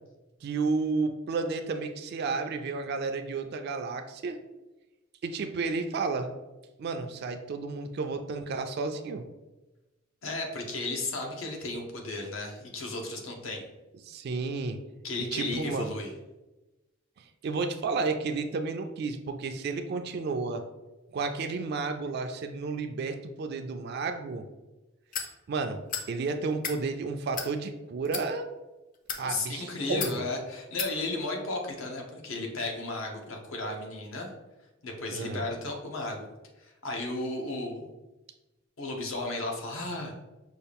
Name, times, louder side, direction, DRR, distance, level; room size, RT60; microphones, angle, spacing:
voice 1, 0.4-4.4 5.2-6.3 6.8-9.2 14.0-14.8 15.2-15.9 17.4-20.6 21.1-24.5 25.5-25.8 26.1-28.5 29.2-30.2 35.1-35.5, right 4 dB, 55° right, 6 dB, 0.3 m, -32 dB
voice 2, 10.2-13.7 15.0-16.1 29.2-34.3 34.8-36.2 36.6-37.9 38.8-40.2, left 2 dB, 80° left, 1 dB, 0.9 m, -34 dB
sound 1, 25.1-25.3 25.9-26.1 26.5-26.8 27.3-27.5 28.1-28.3 28.9-29.2 30.0-30.2 30.8-30.9, left 6 dB, 40° left, 0.5 m, -33 dB
5.5 x 2.4 x 3.4 m, 1.1 s
head